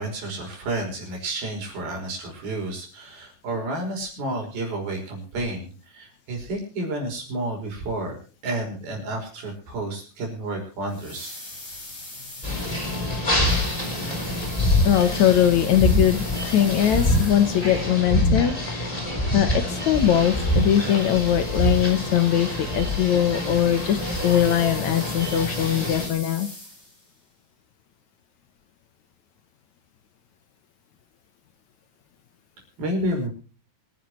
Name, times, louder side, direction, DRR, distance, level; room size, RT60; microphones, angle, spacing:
voice 1, 0.0-8.2 8.4-11.3 32.8-33.3, right 1 dB, 85° right, 1 dB, 7.2 m, -30 dB
sound 1, 10.9-17.9 19.8-27.1, left 2 dB, 50° left, 9.3 m, -42 dB
sound 2, 12.4-26.1, left 1 dB, 10° left, 3.6 m, -25 dB
voice 2, 14.8-19.0 19.3-26.5, left 10 dB, 65° left, 10 dB, 2.0 m, -21 dB
25.5 x 10.5 x 3.1 m, 0.36 s
omnidirectional pair, 4.2 m